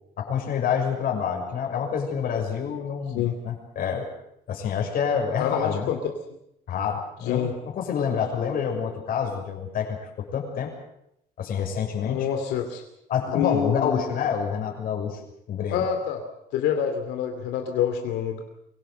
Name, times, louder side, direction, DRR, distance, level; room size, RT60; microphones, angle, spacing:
voice 1, 0.2-4.1 4.5-5.9 6.7-10.7 11.4-12.3 13.1-15.2 15.5-15.8, left 7 dB, 60° left, 2 dB, 6.4 m, -27 dB
voice 2, 5.4-6.0 7.3-7.5 12.0-12.8 13.3-14.0 15.7-16.2 16.5-18.4, left 8 dB, 90° left, 4 dB, 2.8 m, -26 dB
24.5 x 17.5 x 7.9 m, 0.80 s
cardioid pair, 110°, 17 cm